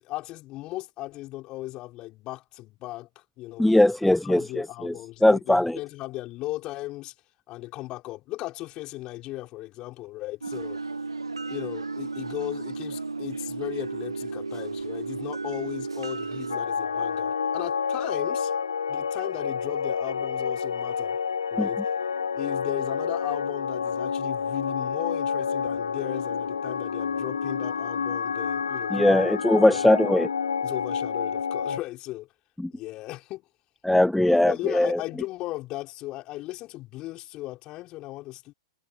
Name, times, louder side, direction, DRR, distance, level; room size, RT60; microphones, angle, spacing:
voice 1, 0.0-3.1 3.4-3.8 4.2-7.1 7.5-10.8 11.5-18.5 18.9-21.2 21.5-21.8 22.3-29.4 30.6-32.3 32.7-33.4 34.3-38.5, left 18 dB, 35° left, 5.9 m, -36 dB
voice 2, 3.6-4.9 5.2-5.8 21.6-21.7 28.9-30.3 32.6-32.7 33.8-35.0, left 1 dB, 5° left, 0.3 m, -20 dB
sound 1, 10.4-16.6, right 3 dB, 85° right, 0.9 m, -33 dB
sound 2, 16.5-31.8, left 6 dB, 70° left, 3.9 m, -29 dB
figure-of-eight pair, 105°, 2 cm